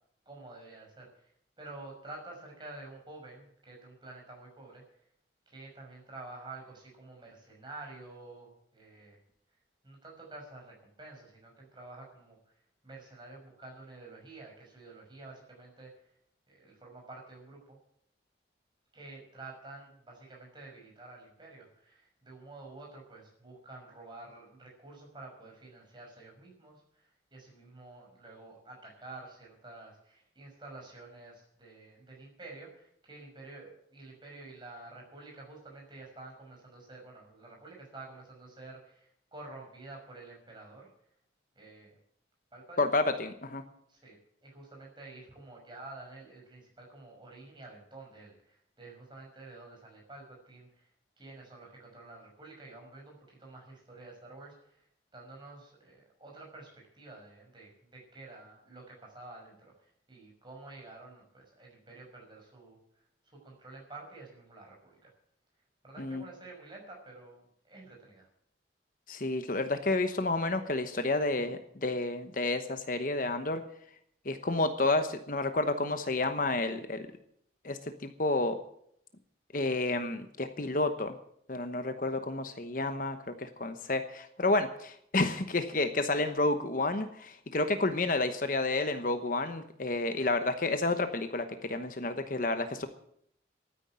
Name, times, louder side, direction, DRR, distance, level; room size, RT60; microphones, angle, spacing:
voice 1, 0.3-1.3 1.6-4.8 5.5-9.2 9.8-12.4 12.8-15.9 16.5-17.8 18.9-40.9 41.6-42.0 42.5-42.9 43.9-50.9 51.2-54.9 55.1-56.7 56.9-62.8 63.3-65.1 65.8-68.3, right 2 dB, 25° right, -1 dB, 5.8 m, -49 dB
voice 2, 42.8-43.6 66.0-66.2 69.1-73.6 74.2-77.1 77.6-78.6 79.5-81.1 81.5-92.9, left 2 dB, 45° left, 9 dB, 1.0 m, -30 dB
13.0 x 9.9 x 8.9 m, 0.69 s
head